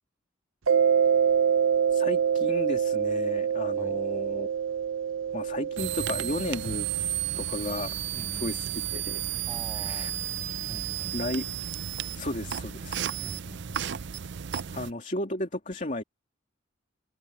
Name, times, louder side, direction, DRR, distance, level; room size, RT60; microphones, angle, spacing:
Mallet percussion, 0.7-7.0, right 7 dB, 90° right, 0.9 m, -26 dB
voice 1, 1.9-4.5 5.3-6.9 7.4-8.0 8.3-9.2 9.8-10.1 11.1-11.4 12.1-13.1 14.7-16.0, left 1 dB, 40° left, 2.8 m, -34 dB
sound 1, 5.8-14.9, right 10 dB, 60° right, 0.5 m, -33 dB
voice 2, 8.1-8.7 9.5-10.2 10.7-11.3 13.2-13.8, equal, 10° right, 6.5 m, -45 dB
head